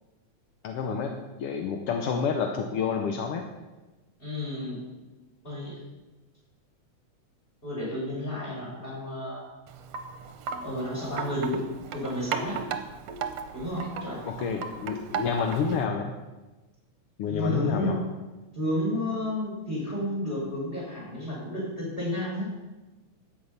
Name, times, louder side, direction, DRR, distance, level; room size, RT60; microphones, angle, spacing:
voice 1, 0.6-1.1 1.4-3.4 14.3-16.1 17.2-18.0, left 6 dB, 70° left, 4 dB, 1.4 m, -28 dB
voice 2, 4.2-4.8 5.4-5.8 7.6-9.4 10.6-11.6 11.9-12.6 13.5-14.2 17.3-18.0 18.5-22.5, left 1 dB, 15° left, -4 dB, 5.5 m, -31 dB
Wind chime, 9.7-15.9, right 6 dB, 70° right, 1.7 m, -36 dB
13.0 x 8.4 x 5.7 m, 1.1 s
omnidirectional pair, 3.5 m